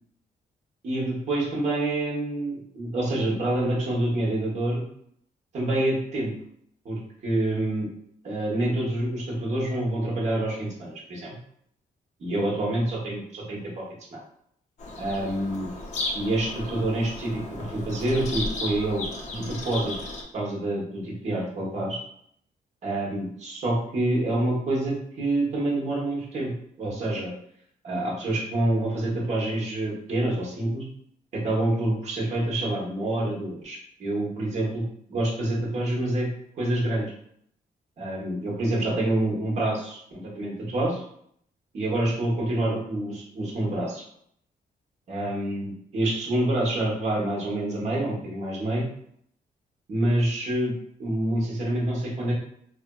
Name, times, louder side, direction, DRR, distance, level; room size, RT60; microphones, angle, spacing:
voice 1, 0.8-4.8 5.5-6.3 6.8-7.9 8.2-11.3 12.2-13.8 14.1-14.2 15.0-15.7 16.1-19.0 19.3-19.9 20.3-22.0 22.8-26.5 26.8-27.3 27.8-30.8 31.3-36.3 36.5-37.1 38.0-41.0 41.7-44.0 45.1-48.8 49.9-50.7 51.0-52.3, right 1 dB, 45° right, -4 dB, 0.8 m, -27 dB
Bird vocalization bird call bird song, 14.8-20.2, left 2 dB, 45° left, 0.5 m, -35 dB
2.9 x 2.3 x 2.2 m, 0.69 s
wide cardioid pair, 180°, 16 cm